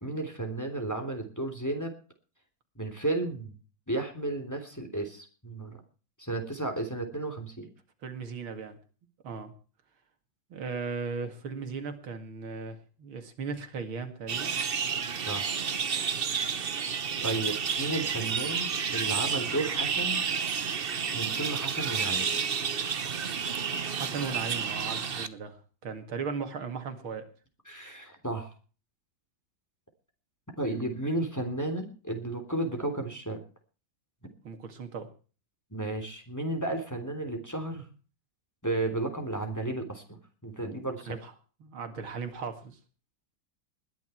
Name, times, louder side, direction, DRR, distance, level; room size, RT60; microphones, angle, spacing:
voice 1, 0.0-1.9 2.7-3.6 3.9-5.8 6.2-7.7 15.2-15.6 17.2-20.2 21.1-22.3 27.7-28.5 30.6-33.4 35.7-37.8 38.6-41.2, right 2 dB, 10° left, 4 dB, 3.4 m, -33 dB
voice 2, 8.0-8.8 9.2-9.5 10.5-14.5 23.9-27.2 34.4-35.1 41.1-41.3 41.6-42.8, right 5 dB, 85° right, 7 dB, 2.9 m, -37 dB
sound 1, 14.3-25.3, right 6 dB, 45° right, 0.7 m, -30 dB
20.5 x 11.0 x 4.5 m, 0.38 s
omnidirectional pair, 2.2 m